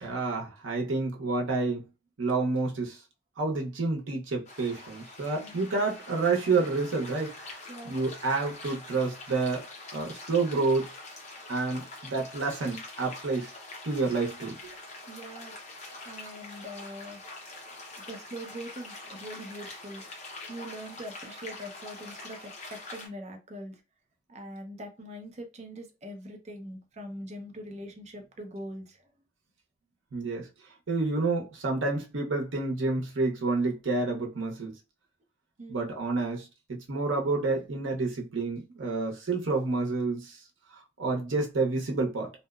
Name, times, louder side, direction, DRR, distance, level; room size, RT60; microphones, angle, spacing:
voice 1, 0.0-1.8 2.2-3.0 3.4-9.7 9.9-10.9 11.5-13.5 13.8-14.6 30.1-30.5 30.9-34.7 35.7-40.4 41.0-42.3, right 3 dB, 85° right, 0.7 m, -29 dB
sound 1, 4.5-23.1, left 2 dB, 35° left, 0.7 m, -45 dB
voice 2, 15.1-15.5 16.1-17.2 18.1-20.0 20.5-23.8 24.3-29.0 35.6-35.8, equal, 35° right, 0.5 m, -42 dB
2.7 x 2.0 x 2.3 m
head